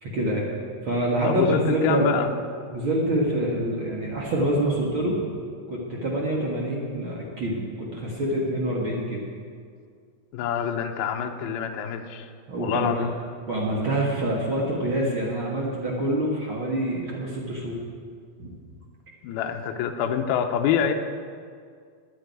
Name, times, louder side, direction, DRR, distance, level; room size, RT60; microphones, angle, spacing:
voice 1, 0.0-0.5 0.8-2.2 2.7-5.2 5.7-9.2 12.5-13.1 13.5-17.8 18.4-18.5, right 1 dB, 70° right, -3 dB, 1.2 m, -26 dB
voice 2, 1.2-2.3 10.3-12.3 12.6-13.1 19.2-20.9, left 8 dB, 75° left, 4 dB, 2.3 m, -26 dB
10.5 x 10.0 x 9.3 m, 2.1 s
omnidirectional pair, 5.2 m